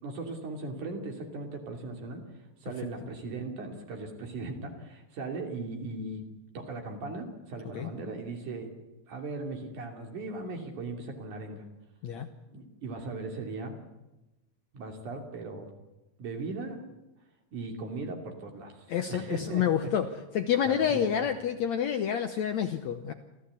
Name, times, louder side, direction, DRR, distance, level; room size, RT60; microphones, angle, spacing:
voice 1, 0.0-2.2 2.6-6.2 6.5-8.7 9.1-11.6 12.5-13.8 14.7-15.7 16.2-16.8 17.5-19.9 20.6-21.1, right 3 dB, 60° right, 3 dB, 4.2 m, -38 dB
voice 2, 18.9-20.1 20.3-23.1, left 9 dB, 70° left, 8 dB, 1.8 m, -28 dB
27.5 x 15.0 x 8.3 m, 1.0 s
omnidirectional pair, 4.1 m